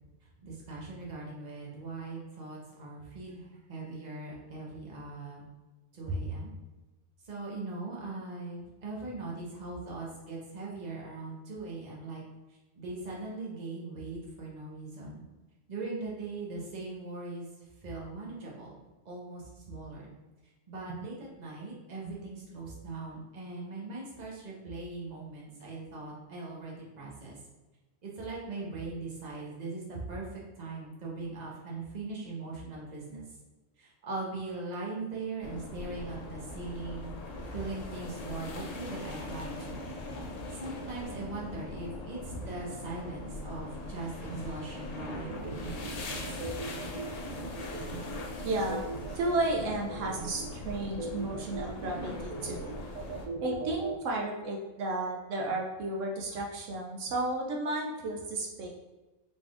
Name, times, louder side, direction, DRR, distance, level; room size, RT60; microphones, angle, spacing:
voice 1, 0.4-5.4 5.9-6.5 7.2-12.2 12.8-15.2 15.7-17.5 17.8-20.1 20.7-27.4 28.0-33.2 33.8-39.8 40.5-46.5, right 3 dB, 40° right, -3 dB, 1.0 m, -40 dB
sound 1, 35.4-53.3, left 2 dB, 75° left, 0.3 m, -41 dB
sound 2, 45.0-54.0, right 4 dB, 60° right, 0.5 m, -39 dB
voice 2, 48.4-48.8 49.1-52.7 53.4-58.7, right 2 dB, 80° right, 0 dB, 1.0 m, -33 dB
4.1 x 3.5 x 2.4 m, 1.1 s
omnidirectional pair, 1.3 m